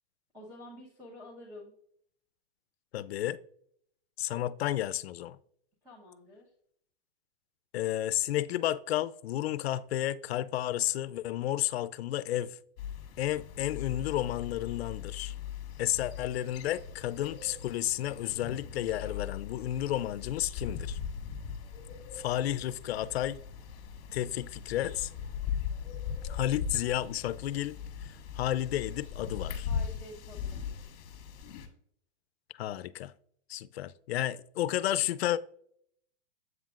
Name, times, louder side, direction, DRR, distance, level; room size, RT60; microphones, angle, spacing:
voice 1, 0.3-1.7 5.8-6.5 29.6-31.0, left 1 dB, 10° right, 1.1 m, -49 dB
voice 2, 2.9-3.4 4.2-5.4 7.7-12.6 13.2-15.3 15.8-21.0 22.1-23.4 24.1-25.1 26.3-27.8 28.0-29.7 32.5-33.1 33.5-35.4, left 13 dB, 75° left, 0.5 m, -32 dB
sound 1, 12.8-31.7, left 7 dB, 40° left, 1.3 m, -39 dB
8.0 x 7.3 x 2.4 m
supercardioid pair, 170°, 32 cm